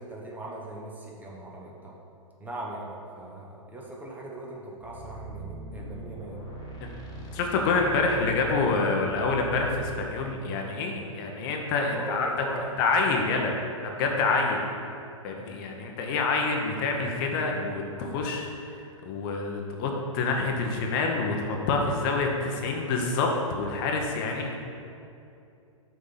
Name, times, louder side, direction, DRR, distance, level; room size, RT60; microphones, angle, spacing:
voice 1, 0.0-1.9 2.4-6.4 11.9-12.7, right 1 dB, 10° right, -3 dB, 0.9 m, -40 dB
sound 1, 4.8-9.9, right 1 dB, 20° left, 1.4 m, -41 dB
voice 2, 7.3-12.3 12.8-13.5 14.0-14.6 15.2-18.5 19.1-24.6, left 3 dB, 40° left, 1 dB, 0.9 m, -27 dB
6.3 x 3.8 x 5.6 m, 2.6 s
hypercardioid pair, 120°, 17 cm